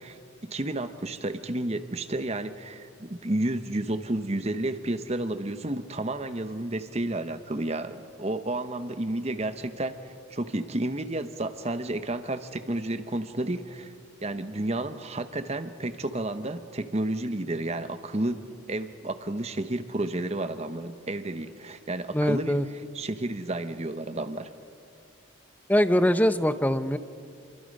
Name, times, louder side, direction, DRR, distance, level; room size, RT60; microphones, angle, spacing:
voice 1, 0.0-13.9 14.2-24.5, right 1 dB, 30° right, 10 dB, 1.0 m, -31 dB
voice 2, 22.1-22.7 25.7-27.0, left 1 dB, 10° left, 12 dB, 0.6 m, -22 dB
29.0 x 23.5 x 5.4 m, 2.5 s
head